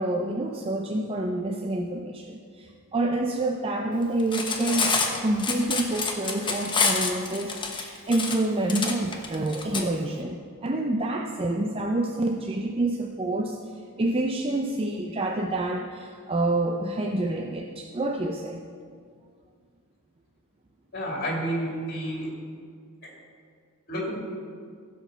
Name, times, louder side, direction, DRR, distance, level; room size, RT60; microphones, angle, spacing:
voice 1, 0.0-5.0 5.2-13.6 14.0-18.6, right 2 dB, 25° right, 2 dB, 0.5 m, -28 dB
Cutlery silverware, 4.2-9.8, left 4 dB, 20° left, 1.0 m, -27 dB
voice 2, 20.9-22.3 23.0-23.1 23.9-24.1, equal, 45° left, -2 dB, 2.7 m, -30 dB
15.0 x 5.2 x 6.7 m, 2.2 s
head